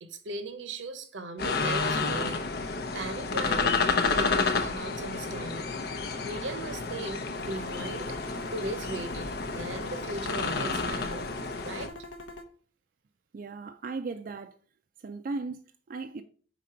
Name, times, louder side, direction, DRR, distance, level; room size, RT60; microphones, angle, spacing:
voice 1, 0.0-3.8 4.1-5.7 6.2-11.3 11.6-11.9, right 2 dB, 80° right, 0.8 m, -38 dB
sound 1, 1.4-11.9, left 4 dB, 55° left, 0.6 m, -30 dB
sound 2, 7.3-12.4, left 2 dB, 85° left, 0.9 m, -43 dB
voice 2, 13.3-14.6 15.0-16.2, right 3 dB, 45° right, 0.4 m, -37 dB
5.0 x 4.1 x 5.7 m
head